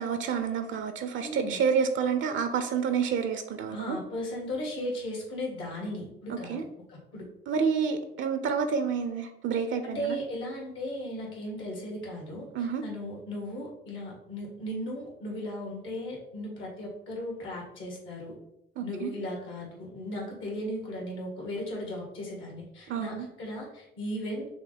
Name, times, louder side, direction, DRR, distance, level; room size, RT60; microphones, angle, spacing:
voice 1, 0.0-4.0 6.3-6.6 7.5-10.2 12.5-12.8 18.8-19.1 22.9-23.3, right 6 dB, 75° right, 8 dB, 0.5 m, -29 dB
voice 2, 1.2-1.6 3.7-7.3 9.8-18.4 18.8-24.5, equal, 80° left, -1 dB, 1.8 m, -36 dB
5.9 x 2.1 x 3.9 m, 0.81 s
cardioid pair, 90°, 20 cm